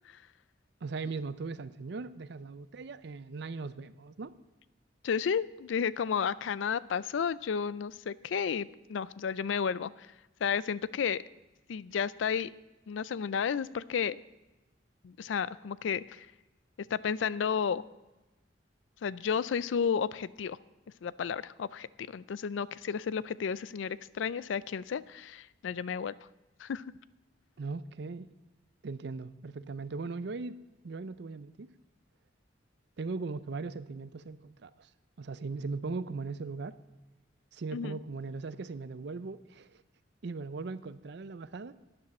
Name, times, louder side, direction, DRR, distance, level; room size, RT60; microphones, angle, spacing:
voice 1, 0.8-4.3 27.6-28.3 28.8-30.6 30.8-31.7 33.0-34.9 35.2-36.8 37.5-39.8 40.2-41.7, right 4 dB, 65° right, 15 dB, 0.5 m, -39 dB
voice 2, 5.0-9.9 10.4-11.2 11.7-12.5 12.9-14.2 15.0-16.3 16.9-17.8 19.0-20.6 21.0-26.1 26.6-26.8 37.7-38.0, left 7 dB, 90° left, 18 dB, 0.4 m, -32 dB
12.5 x 9.8 x 4.3 m, 1.1 s
head